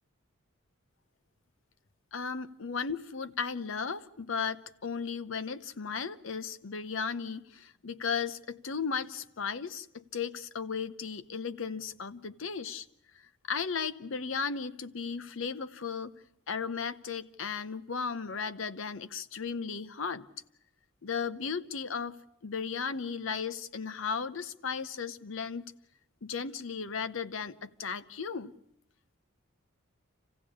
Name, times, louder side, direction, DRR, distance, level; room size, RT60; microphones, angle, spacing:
voice 1, 2.1-12.9 13.1-16.1 16.5-20.2 21.0-22.2 22.4-25.7 26.2-28.5, left 5 dB, 65° left, 14 dB, 0.8 m, -35 dB
26.5 x 15.5 x 8.5 m, 0.80 s
head